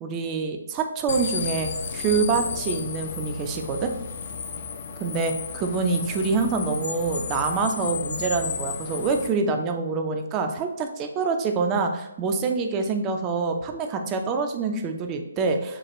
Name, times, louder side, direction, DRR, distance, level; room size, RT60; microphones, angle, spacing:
voice 1, 0.0-3.9 5.0-15.8, right 4 dB, 20° right, 5 dB, 0.4 m, -26 dB
sound 1, 1.1-9.3, left 5 dB, 40° left, 0.4 m, -33 dB
5.9 x 2.3 x 3.0 m, 0.96 s
figure-of-eight pair, 135°, 0 cm